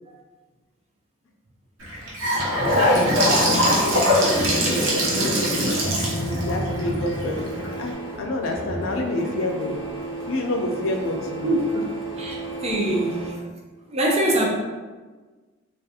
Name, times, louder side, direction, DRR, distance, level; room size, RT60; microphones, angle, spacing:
Gurgling / Sink (filling or washing) / Bathtub (filling or washing), 1.8-7.9, equal, 70° right, 0.7 m, -22 dB
voice 1, 2.6-5.8 6.2-9.8 10.3-11.5, left 1 dB, 75° left, 2 dB, 0.4 m, -28 dB
Printer, 4.3-13.3, right 2 dB, 10° right, 1.1 m, -34 dB
voice 2, 11.4-11.8 12.2-12.4 12.6-13.4 13.9-14.5, right 1 dB, 30° right, -2 dB, 0.5 m, -23 dB
2.7 x 2.3 x 2.3 m, 1.3 s
head